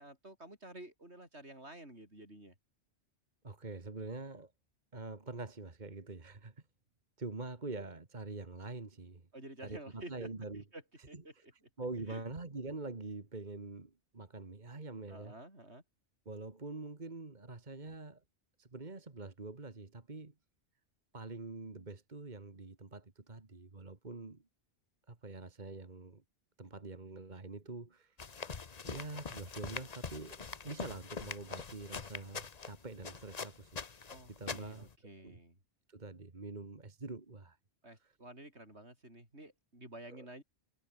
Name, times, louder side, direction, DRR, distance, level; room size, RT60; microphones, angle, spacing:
voice 1, 0.0-2.5 9.3-10.3 10.5-11.5 12.0-12.2 15.1-15.8 34.1-35.6 37.8-40.4, right 1 dB, 75° right, 8.0 m, -51 dB
voice 2, 3.4-4.5 4.9-6.5 7.2-9.3 9.6-10.6 11.1-11.2 11.8-15.3 16.3-18.2 18.6-20.3 21.1-24.4 25.1-26.2 26.6-28.2 28.8-33.8 34.3-34.9 35.2-35.4 35.9-37.6 40.1-40.3, right 3 dB, 40° right, 2.1 m, -45 dB
sound 1, 28.2-34.9, left 5 dB, 40° left, 1.1 m, -44 dB
omnidirectional pair, 1.1 m